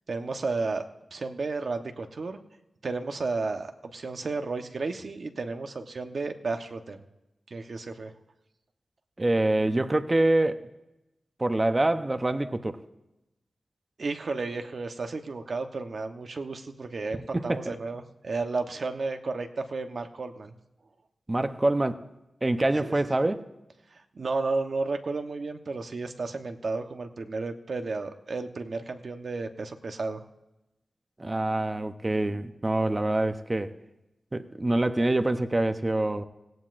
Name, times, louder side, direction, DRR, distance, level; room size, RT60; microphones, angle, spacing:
voice 1, 0.1-0.8 1.1-2.4 2.8-7.0 7.5-8.1 14.0-20.6 22.8-22.9 23.9-30.2, right 3 dB, 65° right, 6 dB, 1.0 m, -33 dB
voice 2, 9.2-10.7 11.4-12.8 17.3-17.8 21.3-22.0 22.4-23.4 31.2-33.7 34.3-36.2, right 2 dB, 30° right, 9 dB, 0.8 m, -25 dB
17.0 x 17.0 x 2.6 m, 0.95 s
cardioid pair, 60°, 0 cm